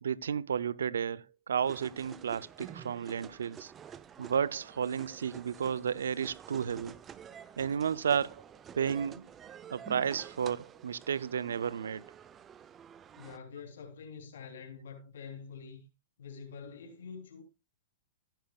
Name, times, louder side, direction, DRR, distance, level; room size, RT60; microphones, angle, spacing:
voice 1, 0.0-3.7 4.2-7.0 7.6-8.4 8.8-9.3 9.7-12.1, right 7 dB, 80° right, 0.5 m, -32 dB
sound 1, 1.6-13.4, right 8 dB, 25° right, 0.6 m, -50 dB
voice 2, 13.2-15.8 16.2-17.4, left 6 dB, 75° left, 3.3 m, -46 dB
13.5 x 10.5 x 2.4 m
hypercardioid pair, 125°, 0 cm